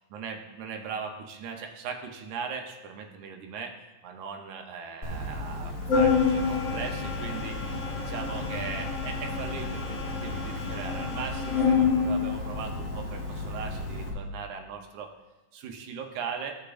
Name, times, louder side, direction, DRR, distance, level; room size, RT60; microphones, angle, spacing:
voice 1, 0.1-3.7 4.0-15.1 15.5-16.5, right 6 dB, 85° right, 3 dB, 2.3 m, -39 dB
Organ, 5.0-14.1, left 4 dB, 45° left, 1.1 m, -28 dB
14.0 x 6.7 x 2.5 m, 1.1 s
omnidirectional pair, 3.3 m